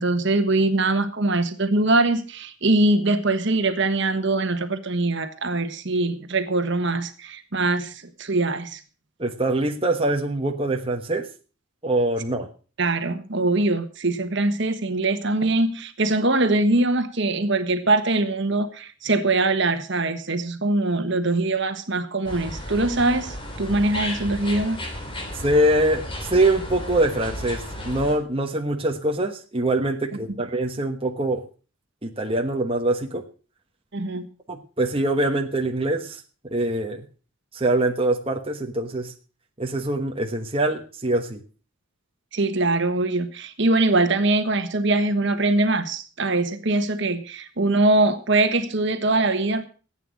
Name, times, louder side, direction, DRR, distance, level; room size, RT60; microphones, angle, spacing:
voice 1, 0.0-8.8 12.8-24.8 33.9-34.3 42.3-49.6, right 2 dB, 55° right, 9 dB, 1.4 m, -22 dB
voice 2, 9.2-11.3 11.8-12.5 25.4-31.4 32.0-33.2 34.5-36.2 36.5-37.0 37.5-39.1 39.6-41.4, right 1 dB, 25° right, 3 dB, 1.2 m, -24 dB
sound 1, 22.2-28.1, left 1 dB, 25° left, 3.1 m, -34 dB
15.5 x 9.1 x 6.3 m, 0.38 s
head